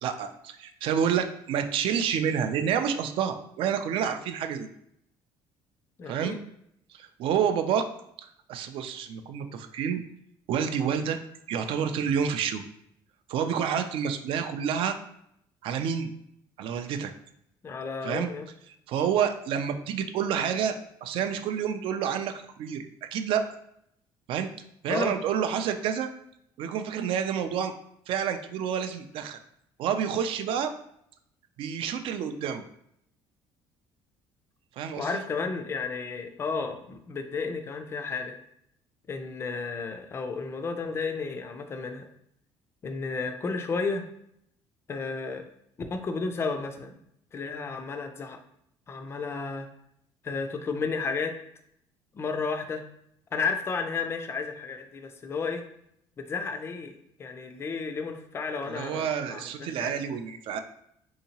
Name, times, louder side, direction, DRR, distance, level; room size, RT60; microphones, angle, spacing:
voice 1, 0.0-4.7 6.1-6.4 7.0-7.9 8.5-10.0 10.5-11.2 11.5-12.6 13.3-15.0 15.6-16.1 16.6-17.1 18.0-18.3 18.9-20.8 21.0-22.8 23.1-23.4 24.3-24.5 24.8-26.1 26.6-27.7 28.1-29.4 29.8-30.7 31.6-32.6 34.8-35.2 58.7-60.6, right 8 dB, 60° right, 8 dB, 0.3 m, -28 dB
voice 2, 6.0-6.4 17.6-18.5 24.9-25.2 35.0-38.4 39.1-42.1 42.8-44.0 44.9-45.4 45.9-47.0 47.3-48.4 48.9-49.7 50.2-51.3 52.1-52.8 53.3-55.6 56.2-59.9, left 4 dB, 25° left, 6 dB, 0.3 m, -32 dB
3.5 x 2.8 x 2.8 m, 0.74 s
cardioid pair, 145°, 10 cm